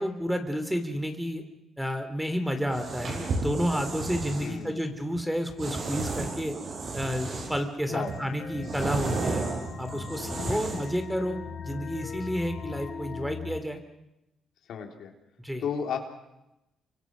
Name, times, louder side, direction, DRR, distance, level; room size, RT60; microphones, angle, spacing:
voice 1, 0.0-1.4 1.8-6.6 6.9-9.4 9.8-11.4 11.6-13.8 15.4-15.6, equal, 5° right, 7 dB, 3.0 m, -30 dB
sound 1, 2.7-4.5 5.6-7.7 8.1-11.0, right 3 dB, 50° right, 6.2 m, -33 dB
voice 2, 4.4-4.8 7.9-8.1 10.4-10.8 14.7-15.1 15.6-16.0, left 7 dB, 70° left, 2 dB, 3.7 m, -34 dB
sound 2, 7.9-13.6, left 6 dB, 50° left, 1.1 m, -40 dB
29.0 x 24.5 x 6.2 m, 0.91 s
cardioid pair, 90°, 0 cm